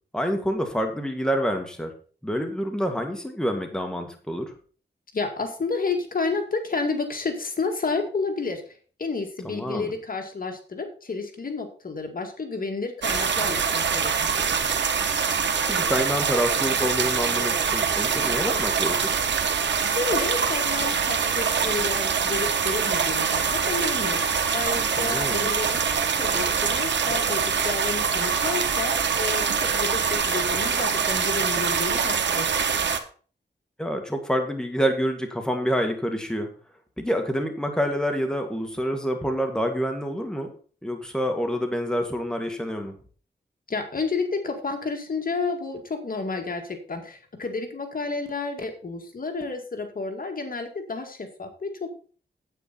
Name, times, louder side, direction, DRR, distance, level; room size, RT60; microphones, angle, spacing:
voice 1, 0.1-1.9 2.2-4.5 9.4-9.9 15.7-19.2 25.0-25.5 33.8-36.5 37.0-40.5 40.8-42.9, equal, 5° left, 4 dB, 2.0 m, -27 dB
voice 2, 5.1-14.7 19.8-24.2 24.5-25.8 26.2-32.6 43.7-51.9, left 4 dB, 50° left, 4 dB, 2.2 m, -31 dB
sound 1, 13.0-33.0, right 6 dB, 90° right, 1.2 m, -24 dB
9.2 x 8.9 x 4.2 m, 0.40 s
wide cardioid pair, 90°, 18 cm